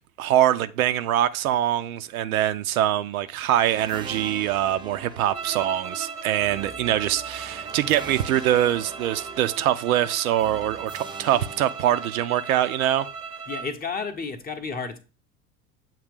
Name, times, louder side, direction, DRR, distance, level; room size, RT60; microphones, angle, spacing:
voice 1, 0.2-13.1, right 12 dB, 65° right, 0.5 m, -23 dB
sound 1, 3.6-12.5, right 5 dB, 10° right, 0.4 m, -42 dB
sound 2, 5.3-13.7, right 5 dB, 90° right, 1.0 m, -37 dB
voice 2, 13.5-15.0, left 5 dB, 20° left, 0.8 m, -31 dB
7.4 x 2.8 x 5.1 m
figure-of-eight pair, 75°, 45 cm